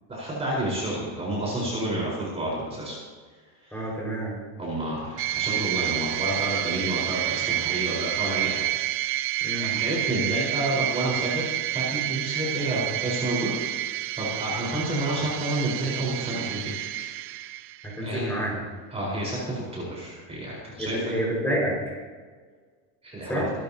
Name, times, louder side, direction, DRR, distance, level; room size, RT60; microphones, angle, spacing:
voice 1, 0.1-3.0 3.6-3.8 4.6-8.7 9.6-17.1 18.0-18.4 18.9-21.2 23.0-23.4, right 1 dB, 15° right, -5 dB, 4.6 m, -30 dB
voice 2, 3.7-4.4 9.4-9.8 17.8-18.6 20.8-22.0 23.3-23.5, right 1 dB, 5° left, -4 dB, 5.3 m, -29 dB
sound 1, 5.2-18.0, right 14 dB, 30° right, 0.4 m, -29 dB
26.0 x 12.5 x 2.9 m, 1.5 s
cardioid pair, 160°, 43 cm